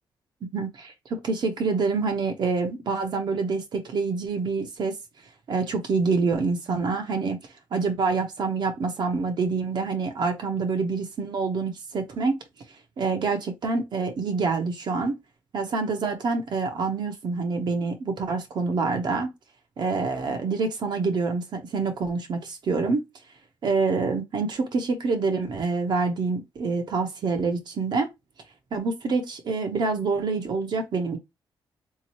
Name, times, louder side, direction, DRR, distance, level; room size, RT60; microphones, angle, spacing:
voice 1, 0.5-0.9 1.2-5.0 5.5-7.4 7.7-12.3 13.0-15.1 15.5-19.3 19.8-23.0 23.6-28.1 28.7-31.2, right 4 dB, 55° right, 0.7 m, -26 dB
3.8 x 2.8 x 2.9 m
cardioid pair, 115°, 9 cm